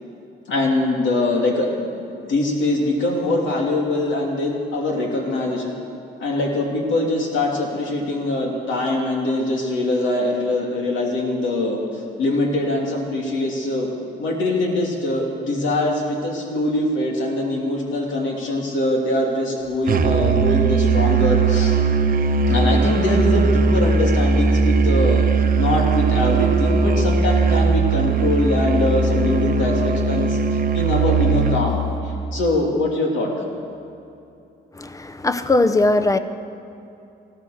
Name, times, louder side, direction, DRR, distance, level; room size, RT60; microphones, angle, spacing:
voice 1, 0.5-1.9 2.2-5.8 6.2-11.8 12.2-13.9 14.2-21.8 22.5-25.2 25.6-30.4 30.7-33.3, left 2 dB, 75° left, 0 dB, 3.0 m, -23 dB
Musical instrument, 19.9-31.7, right 4 dB, 45° right, 1.0 m, -19 dB
voice 2, 34.8-36.2, left 2 dB, 15° left, 11 dB, 0.8 m, -19 dB
16.0 x 12.5 x 6.6 m, 2.7 s
cardioid pair, 90°, 20 cm